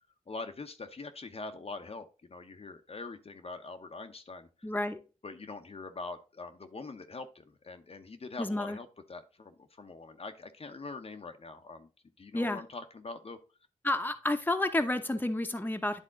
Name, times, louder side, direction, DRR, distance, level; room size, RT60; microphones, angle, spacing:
voice 1, 0.3-4.5 5.2-11.9 12.2-13.4, left 3 dB, 50° left, 6 dB, 0.8 m, -43 dB
voice 2, 4.6-5.0 8.4-8.8 12.3-12.6 13.8-16.0, left 1 dB, 15° left, 7 dB, 0.9 m, -30 dB
10.0 x 3.6 x 3.7 m, 0.33 s
cardioid pair, 50°, 13 cm